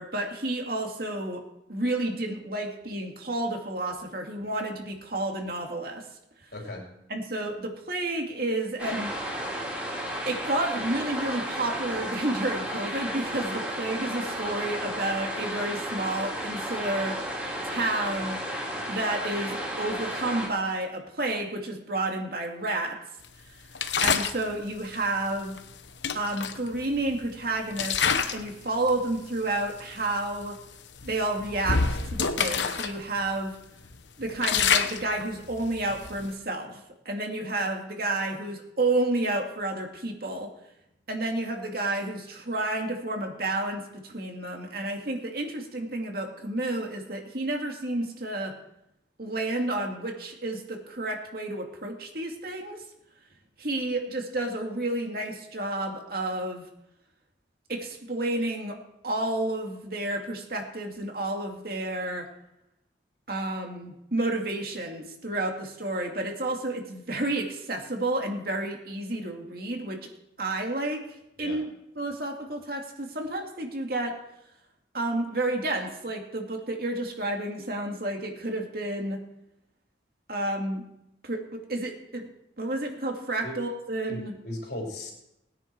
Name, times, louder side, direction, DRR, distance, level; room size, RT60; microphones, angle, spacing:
voice 1, 0.0-1.4 1.7-6.0 7.1-9.1 10.3-17.2 17.6-18.4 18.9-23.0 24.0-25.6 26.1-27.9 28.3-30.6 31.0-33.5 34.2-36.8 37.1-40.5 41.1-48.5 49.2-52.8 53.6-56.6 57.7-58.8 59.0-62.3 63.3-70.1 70.4-71.0 71.4-71.6 72.0-74.2 74.9-79.2 80.3-80.8 81.2-82.3 82.6-84.3, right 2 dB, 50° right, 2 dB, 2.3 m, -30 dB
voice 2, 6.5-6.9 71.4-71.6 83.4-83.5 84.1-85.1, left 1 dB, 60° left, -1 dB, 4.3 m, -37 dB
sound 1, 8.8-20.5, equal, 10° right, 3.2 m, -33 dB
sound 2, 23.7-24.4 25.6-25.7 26.0-27.2 27.7-28.5 28.9-29.1 29.8-29.9 30.2-30.5 31.0-32.9 33.3-33.4 33.8-36.3, left 6 dB, 75° left, 1.0 m, -27 dB
20.5 x 9.8 x 4.7 m, 0.84 s
head